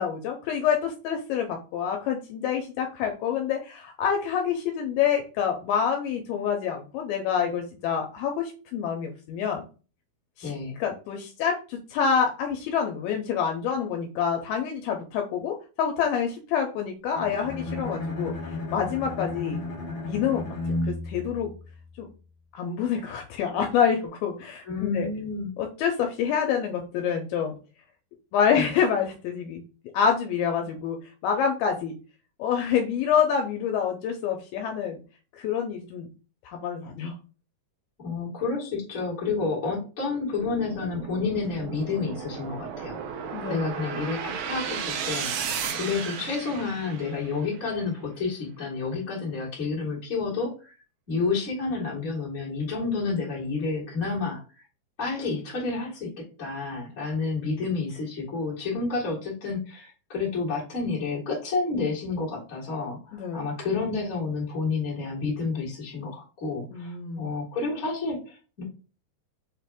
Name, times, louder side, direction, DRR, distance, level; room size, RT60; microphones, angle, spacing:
voice 1, 0.0-9.6 10.4-10.5 10.8-19.6 20.0-21.5 22.0-22.1 22.5-25.1 25.6-27.5 28.3-29.6 29.9-31.0 31.2-32.0 32.4-35.0 35.4-36.1 36.5-37.1 43.3-43.8 63.1-63.5 66.7-67.3, left 7 dB, 80° left, 3 dB, 2.4 m, -27 dB
voice 2, 10.4-10.8 24.6-25.5 28.5-28.7 38.0-44.8 45.0-50.7 51.1-54.4 55.0-68.6, left 4 dB, 30° left, -5 dB, 1.3 m, -30 dB
Bowed string instrument, 17.1-22.2, left 2 dB, 45° left, 1.5 m, -33 dB
sound 1, 40.3-47.6, right 7 dB, 80° right, 2.3 m, -34 dB
6.3 x 2.4 x 3.4 m, 0.35 s
omnidirectional pair, 4.6 m